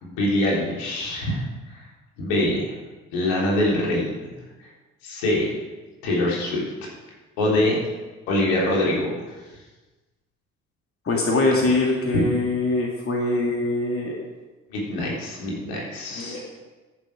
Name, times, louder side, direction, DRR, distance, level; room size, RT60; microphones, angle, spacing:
voice 1, 0.0-1.4 1.7-1.8 2.2-2.7 3.1-4.3 5.0-5.5 6.0-6.6 7.4-7.8 8.3-9.1 12.1-12.2 14.7-16.4, left 1 dB, 70° left, -4 dB, 3.6 m, -24 dB
voice 2, 11.0-14.1 16.1-16.4, left 2 dB, 35° left, -1 dB, 2.5 m, -23 dB
14.0 x 7.1 x 4.9 m, 1.2 s
figure-of-eight pair, 50°, 37 cm